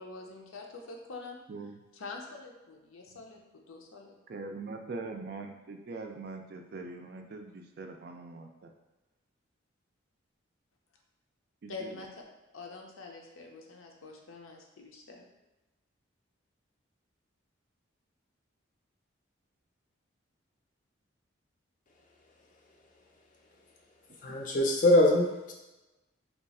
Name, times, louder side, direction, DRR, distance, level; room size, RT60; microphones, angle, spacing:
voice 1, 0.0-1.4 1.9-3.4 3.7-4.2 11.7-12.2 12.5-15.3, left 3 dB, 85° left, 1 dB, 0.6 m, -45 dB
voice 2, 1.5-1.8 3.1-3.2 4.3-8.7 11.6-12.0 24.3-24.4, right 3 dB, 50° right, 4 dB, 0.3 m, -42 dB
voice 3, 24.2-25.5, left 1 dB, 40° left, 1 dB, 0.5 m, -23 dB
2.9 x 2.3 x 4.1 m, 1.0 s
head